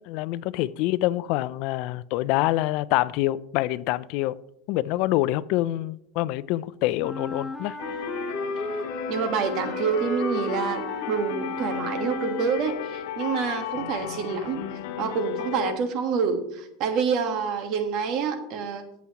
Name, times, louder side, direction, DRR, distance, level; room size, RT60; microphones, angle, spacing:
voice 1, 0.1-4.4 4.7-7.8, left 16 dB, 50° left, 0.3 m, -26 dB
Wind instrument woodwind instrument, 7.0-12.8, left 1 dB, ahead, 0.7 m, -34 dB
sound 1, 7.8-15.7, left 10 dB, 80° left, 0.8 m, -34 dB
voice 2, 9.1-14.6 15.0-18.8, right 6 dB, 45° right, 1.3 m, -27 dB
14.0 x 8.3 x 2.9 m
supercardioid pair, 160°, 0 cm